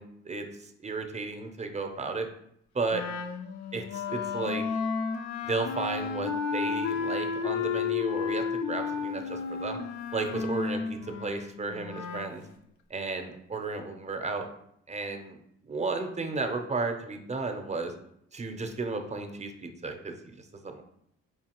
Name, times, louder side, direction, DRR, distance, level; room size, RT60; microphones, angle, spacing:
voice 1, 0.0-2.3 2.8-3.0 3.7-4.6 5.4-9.8 10.1-12.4 12.9-14.5 14.9-15.4 15.6-17.9 18.3-20.8, right 3 dB, 25° right, 5 dB, 0.5 m, -33 dB
Wind instrument woodwind instrument, 2.9-12.4, left 6 dB, 75° left, 0.5 m, -32 dB
4.6 x 2.7 x 2.9 m, 0.73 s
cardioid pair, 90°, 30 cm